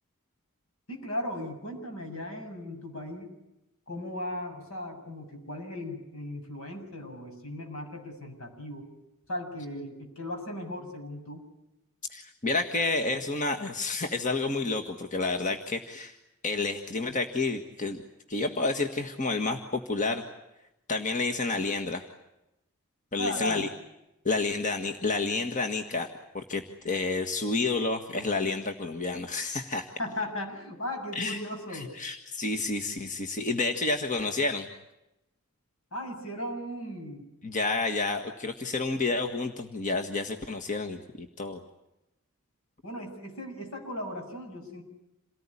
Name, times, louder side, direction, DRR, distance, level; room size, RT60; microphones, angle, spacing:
voice 1, 0.9-3.3 3.9-8.9 9.3-11.4 23.2-23.7 30.0-31.9 35.9-37.2 42.8-44.8, left 1 dB, 75° left, 3 dB, 7.2 m, -37 dB
voice 2, 12.1-16.2 16.4-18.0 18.3-20.2 20.9-22.0 23.1-23.7 24.2-26.1 26.3-29.9 31.1-31.4 31.7-34.7 37.4-41.6, left 3 dB, 35° left, 4 dB, 1.6 m, -30 dB
28.0 x 18.5 x 9.9 m, 0.92 s
head